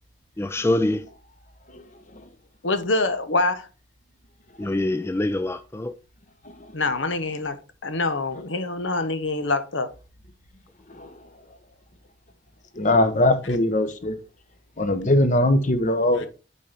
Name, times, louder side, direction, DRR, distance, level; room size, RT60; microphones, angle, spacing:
voice 1, 0.4-1.1 4.6-5.9, left 1 dB, 15° left, 0.3 m, -24 dB
voice 2, 2.6-3.7 6.7-9.9 16.2-16.3, left 2 dB, 80° left, 1.0 m, -25 dB
voice 3, 12.7-14.2 14.8-16.3, left 1 dB, 40° left, 1.1 m, -21 dB
8.5 x 4.3 x 5.2 m
head